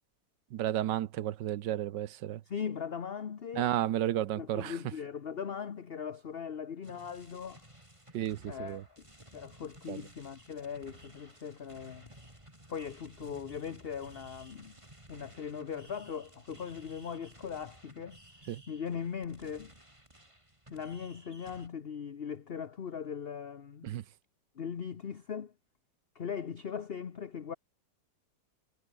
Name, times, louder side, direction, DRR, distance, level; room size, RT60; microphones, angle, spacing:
voice 1, 0.5-2.4 3.6-4.7 8.1-8.8 9.9-10.0 18.5-18.6 23.8-24.0, right 12 dB, 75° right, 1.5 m, -32 dB
voice 2, 2.5-3.7 4.4-7.6 8.5-9.0 9.3-12.1 12.7-14.8 15.1-18.2 18.7-19.7 20.7-23.9 24.5-25.5 26.1-27.5, left 7 dB, 40° left, 1.0 m, -39 dB
sound 1, 6.8-21.7, right 1 dB, 15° right, 6.2 m, -56 dB
omnidirectional pair, 1.9 m